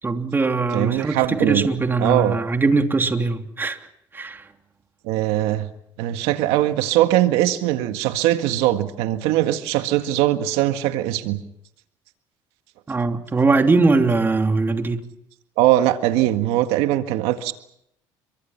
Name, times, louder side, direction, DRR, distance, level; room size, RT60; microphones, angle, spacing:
voice 1, 0.0-3.8 4.1-4.5 12.9-15.1, right 3 dB, 20° right, 3.1 m, -21 dB
voice 2, 0.7-1.7 2.0-2.4 5.0-5.7 6.0-11.4 15.6-17.5, right 14 dB, 80° right, 1.8 m, -21 dB
30.0 x 24.5 x 5.9 m
supercardioid pair, 95°, 10 cm